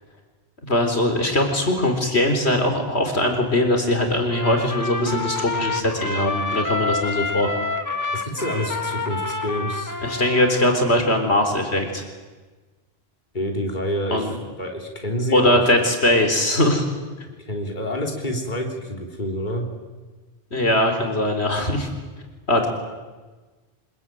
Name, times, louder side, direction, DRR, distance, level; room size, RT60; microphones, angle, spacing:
voice 1, 0.6-7.5 10.0-12.0 14.1-14.4 15.3-16.9 20.5-21.9 22.5-22.7, left 1 dB, 80° left, 5 dB, 4.2 m, -21 dB
Trumpet, 4.3-10.9, left 3 dB, 15° left, 1.6 m, -28 dB
voice 2, 8.1-9.9 13.3-14.3 14.6-15.6 17.4-19.7, equal, 45° left, 2 dB, 3.3 m, -27 dB
26.0 x 21.0 x 9.3 m, 1.3 s
omnidirectional pair, 1.1 m